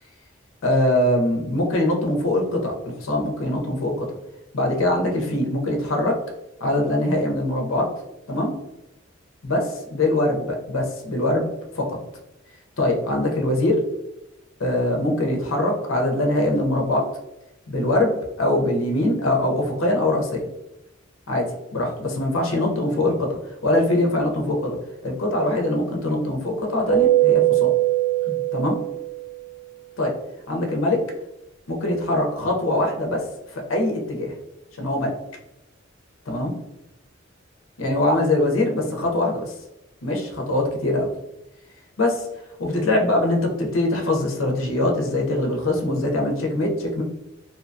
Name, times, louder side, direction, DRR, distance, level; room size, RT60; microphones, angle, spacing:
voice 1, 0.6-4.1 4.5-6.2 6.6-7.9 8.3-8.5 9.4-12.0 12.8-13.8 14.6-17.1 17.7-20.4 21.3-24.8 25.0-27.7 28.3-28.8 30.0-30.2 30.5-31.0 31.7-34.3 34.8-35.1 36.3-36.5 37.8-39.5 40.0-41.1 42.0-42.3 42.6-47.0, left 1 dB, 75° left, 2 dB, 0.6 m, -23 dB
Keyboard (musical), 26.9-29.4, right 14 dB, 35° right, 1.1 m, -20 dB
2.7 x 2.2 x 2.6 m, 0.90 s
head